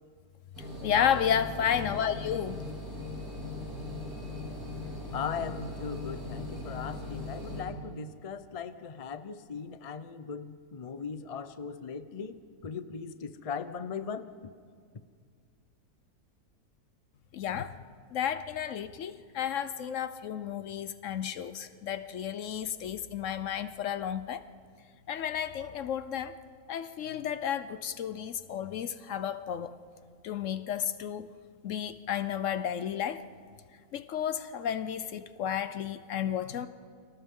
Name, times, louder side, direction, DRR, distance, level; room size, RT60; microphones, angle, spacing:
sound 1, 0.5-7.6, left 2 dB, 75° right, 7.0 m, -39 dB
voice 1, 0.8-2.6 17.3-17.8 18.1-24.4 25.1-26.3 26.7-29.7 30.2-31.3 31.6-33.2 33.9-36.7, left 9 dB, 65° left, 0.9 m, -32 dB
voice 2, 5.1-14.3, left 6 dB, 40° left, 0.5 m, -38 dB
30.0 x 25.0 x 3.7 m
omnidirectional pair, 1.6 m